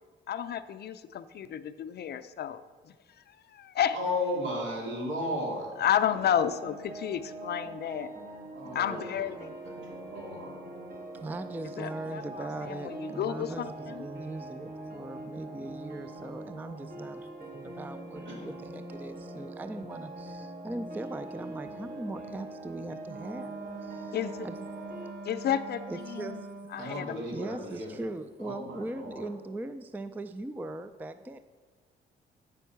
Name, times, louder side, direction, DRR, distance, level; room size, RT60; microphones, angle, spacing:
voice 1, 0.3-2.6 3.5-4.0 5.8-8.1 8.8-9.4 11.8-14.0 24.1-24.5 25.3-26.4 26.7-27.2, left 9 dB, 55° left, 12 dB, 0.4 m, -31 dB
voice 2, 3.9-5.7 8.5-9.7 10.0-10.7 18.2-18.5 26.8-28.1 28.4-29.3, left 1 dB, 70° right, -2 dB, 2.7 m, -35 dB
sound 1, 6.1-25.1, right 1 dB, 45° right, 1.8 m, -43 dB
voice 3, 11.1-24.2 24.4-24.7 25.9-26.7 27.3-31.4, right 2 dB, 10° right, 11 dB, 0.3 m, -40 dB
Wind instrument woodwind instrument, 23.0-26.9, right 4 dB, 85° right, 0.6 m, -43 dB
8.2 x 5.3 x 5.8 m, 1.4 s
cardioid pair, 90°, 20 cm